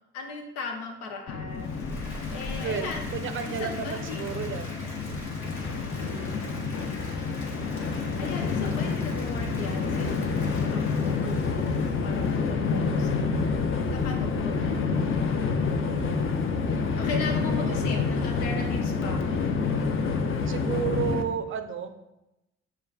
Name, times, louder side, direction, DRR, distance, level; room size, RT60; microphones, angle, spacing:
voice 1, 0.1-3.1 3.4-4.2 5.7-7.2 8.2-15.1 17.0-19.3, left 4 dB, 90° left, 2 dB, 0.6 m, -38 dB
Train, 1.3-21.2, left 4 dB, 40° left, 0.5 m, -28 dB
Applause, 1.5-13.2, left 1 dB, 65° left, 1.2 m, -45 dB
voice 2, 2.6-4.7 6.6-7.1 15.8-16.4 17.5-18.1 20.2-21.9, right 8 dB, 40° right, 8 dB, 0.5 m, -34 dB
6.2 x 2.3 x 2.3 m, 0.92 s
hypercardioid pair, 45°, 31 cm